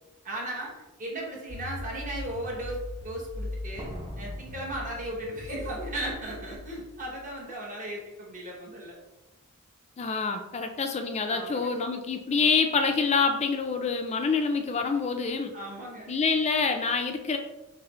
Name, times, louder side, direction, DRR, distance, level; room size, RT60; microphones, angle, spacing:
voice 1, 0.2-0.7 1.0-3.9 4.2-9.0 11.3-11.7 13.3-13.4 15.5-16.1, right 1 dB, 35° right, -3 dB, 1.1 m, -36 dB
Slam, 0.6-0.7 1.3-1.7 3.8-5.7 5.9-6.0, equal, 20° right, 0.6 m, -45 dB
sound 1, 1.5-7.4, left 2 dB, 85° left, 0.7 m, -40 dB
voice 2, 10.0-15.5 16.1-17.4, left 5 dB, 30° left, 6 dB, 0.4 m, -26 dB
5.6 x 2.0 x 3.0 m, 1.0 s
head